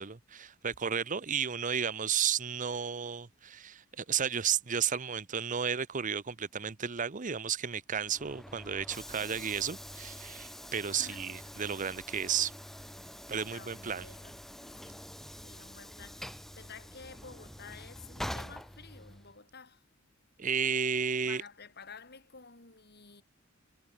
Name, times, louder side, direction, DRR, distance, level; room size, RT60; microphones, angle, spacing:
voice 1, 0.0-12.5 13.3-14.0 20.4-21.4, right 7 dB, 40° right, 0.8 m, -33 dB
Train / Sliding door, 8.0-19.4, equal, ahead, 0.4 m, -46 dB
voice 2, 10.9-11.2 13.5-15.1 15.4-19.8 20.9-23.2, left 5 dB, 55° left, 7.0 m, -52 dB
head